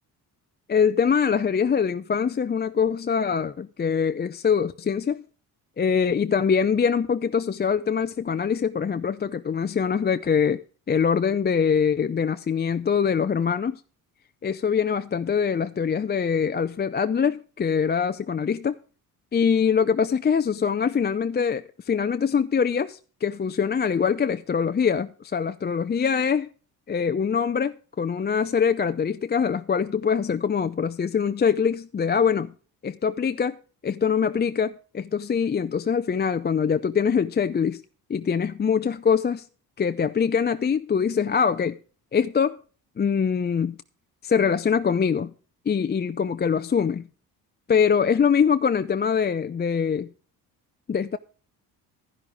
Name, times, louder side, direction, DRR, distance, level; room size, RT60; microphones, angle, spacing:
voice 1, 0.7-5.2 5.8-13.8 14.4-18.8 19.3-26.5 26.9-32.5 32.8-37.8 38.1-39.5 39.8-41.8 42.1-42.6 43.0-43.8 44.2-45.3 45.7-47.0 47.7-50.1 50.9-51.2, left 6 dB, 25° left, 0.5 m, -23 dB
11.0 x 10.5 x 3.6 m
supercardioid pair, 65°, 41 cm